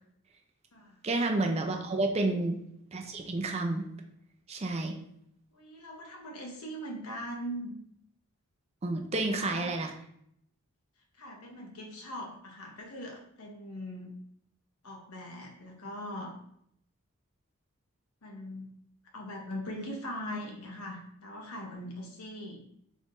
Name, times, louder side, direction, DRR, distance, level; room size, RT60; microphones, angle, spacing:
voice 1, 1.0-2.6 2.9-3.8 4.5-5.0 8.8-9.9, right 2 dB, 30° right, 3 dB, 0.4 m, -30 dB
voice 2, 5.5-7.8 9.2-9.8 11.2-14.1 14.8-16.3 18.2-18.7 19.1-22.6, equal, 85° left, 1 dB, 0.9 m, -41 dB
4.0 x 3.6 x 2.5 m, 0.72 s
head